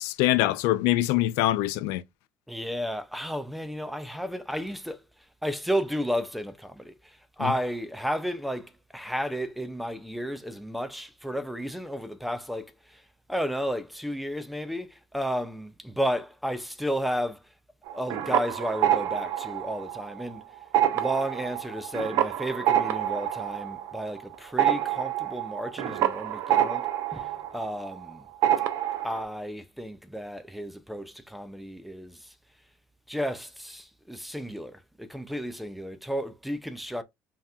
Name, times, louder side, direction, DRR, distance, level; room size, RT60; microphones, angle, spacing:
voice 1, 0.0-2.0 7.4-7.5, left 16 dB, 90° left, 0.4 m, -24 dB
voice 2, 2.5-5.0 5.4-6.9 7.4-12.7 13.3-17.4 17.9-20.4 20.9-26.9 27.1-28.2 29.0-32.2 33.1-37.0, equal, ahead, 0.4 m, -32 dB
sound 1, 17.9-20.3 20.6-28.1 28.4-29.2, right 11 dB, 70° right, 0.7 m, -27 dB
5.5 x 2.9 x 2.3 m
cardioid pair, 135°, 5 cm